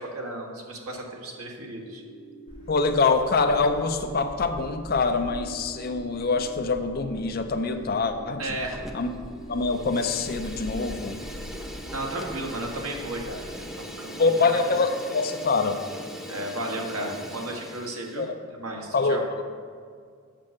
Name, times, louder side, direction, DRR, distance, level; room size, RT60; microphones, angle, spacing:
voice 1, 0.0-2.0 8.4-8.8 11.9-13.7 14.0-14.6 16.3-18.2 18.5-19.2, right 1 dB, 80° right, 0 dB, 1.6 m, -34 dB
sound 1, 1.8-17.3, right 1 dB, 65° left, 1.2 m, -46 dB
Gull seagull, 2.5-13.7, equal, 20° right, 2.1 m, -44 dB
voice 2, 2.7-8.6 8.9-9.1 9.5-11.2 14.2-15.8 18.2-18.4 18.9-19.4, left 4 dB, 45° left, 7 dB, 0.5 m, -25 dB
Fire, 8.7-9.2 9.5-18.3, equal, ahead, 0.5 m, -41 dB
7.5 x 6.3 x 6.4 m, 2.1 s
head